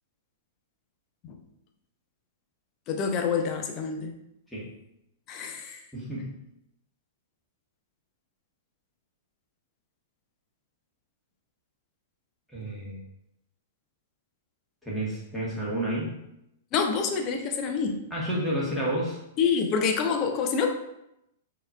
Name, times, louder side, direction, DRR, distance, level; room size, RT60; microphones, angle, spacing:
voice 1, 2.9-4.1 5.3-5.8 16.7-18.0 19.4-20.7, left 6 dB, 35° left, 4 dB, 0.6 m, -27 dB
voice 2, 5.9-6.3 12.5-13.0 14.8-16.1 18.1-19.2, right 1 dB, 5° left, -7 dB, 1.6 m, -30 dB
6.2 x 2.9 x 2.4 m, 0.82 s
figure-of-eight pair, 105°, 0 cm